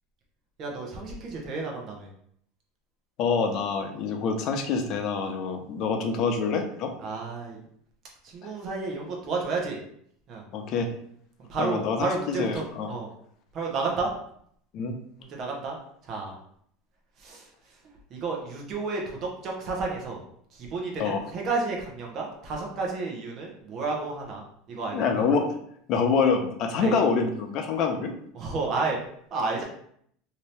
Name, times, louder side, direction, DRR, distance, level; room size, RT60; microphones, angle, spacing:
voice 1, 0.6-2.1 7.0-7.6 8.3-9.8 10.3-10.4 11.5-13.1 13.5-14.1 15.2-15.8 16.0-16.3 17.2-17.4 18.1-20.2 20.5-25.1 26.8-27.0 28.3-29.0 29.3-29.6, right 3 dB, 40° right, -1 dB, 0.9 m, -31 dB
voice 2, 3.2-6.9 8.4-8.5 10.5-10.9 11.6-12.9 14.7-14.9 21.0-21.2 24.9-25.5 25.9-28.1, left 5 dB, 50° left, 4 dB, 0.5 m, -26 dB
2.8 x 2.7 x 3.3 m, 0.66 s
supercardioid pair, 130°, 0 cm